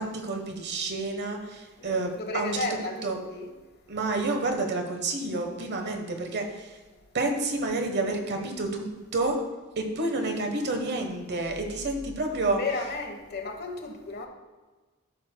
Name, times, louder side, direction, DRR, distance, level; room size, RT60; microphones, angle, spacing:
voice 1, 0.0-2.7 3.0-3.2 3.9-6.8 7.1-9.4 9.8-12.6, right 2 dB, 55° right, 4 dB, 1.2 m, -29 dB
voice 2, 1.8-3.5 12.5-14.3, left 3 dB, 50° left, 4 dB, 1.1 m, -33 dB
13.5 x 6.6 x 2.2 m, 1.3 s
head